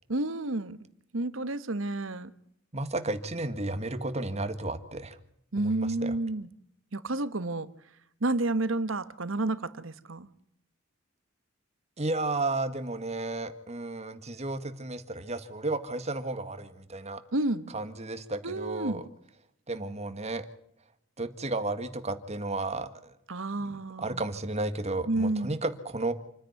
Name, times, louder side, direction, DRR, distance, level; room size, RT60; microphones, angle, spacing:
voice 1, 0.1-0.8 1.1-2.3 5.5-6.5 6.9-7.7 8.2-10.3 17.3-17.7 18.4-19.0 23.3-24.2 25.1-25.6, right 2 dB, 85° right, 1.3 m, -30 dB
voice 2, 2.7-5.2 5.6-6.2 12.0-17.2 17.7-19.1 19.7-20.5 21.2-23.1 23.6-26.1, right 2 dB, 35° right, 1.8 m, -33 dB
28.0 x 10.0 x 9.5 m
head